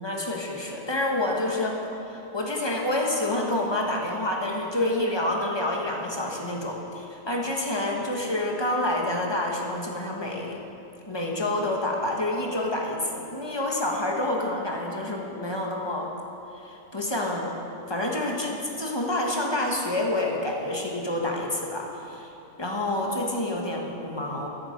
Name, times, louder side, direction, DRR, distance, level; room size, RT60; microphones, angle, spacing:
voice 1, 0.0-1.8 2.1-10.6 11.1-16.1 16.5-17.5 17.9-22.3 22.6-24.5, left 1 dB, 20° left, 0 dB, 1.5 m, -28 dB
13.5 x 11.0 x 5.3 m, 2.9 s
omnidirectional pair, 1.3 m